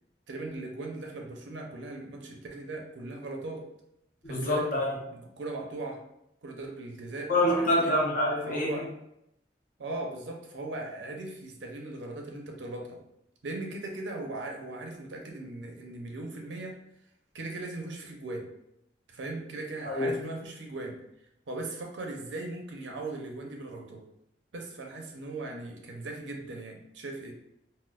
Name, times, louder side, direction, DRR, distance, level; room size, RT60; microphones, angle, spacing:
voice 1, 0.3-3.6 4.3-4.7 5.1-6.0 6.4-7.3 7.6-7.9 8.5-8.9 9.8-13.0 13.4-16.7 17.3-18.5 19.1-21.0 21.5-24.0 24.5-27.3, right 2 dB, 80° right, 1 dB, 0.6 m, -38 dB
voice 2, 4.2-5.0 7.3-8.8 19.8-20.1, left 1 dB, 50° left, -3 dB, 0.8 m, -26 dB
4.2 x 2.1 x 2.4 m, 0.80 s
head